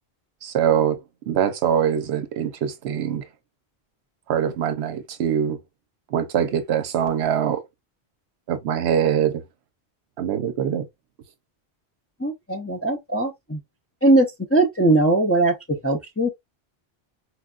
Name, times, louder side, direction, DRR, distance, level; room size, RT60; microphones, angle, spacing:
voice 1, 0.4-1.0 1.3-3.3 4.3-5.6 6.1-7.6 8.5-9.4 10.2-10.9, right 8 dB, 75° right, 0.9 m, -23 dB
voice 2, 12.2-13.6 14.0-16.3, right 2 dB, 20° left, 0.4 m, -20 dB
4.5 x 2.2 x 2.3 m
omnidirectional pair, 1.1 m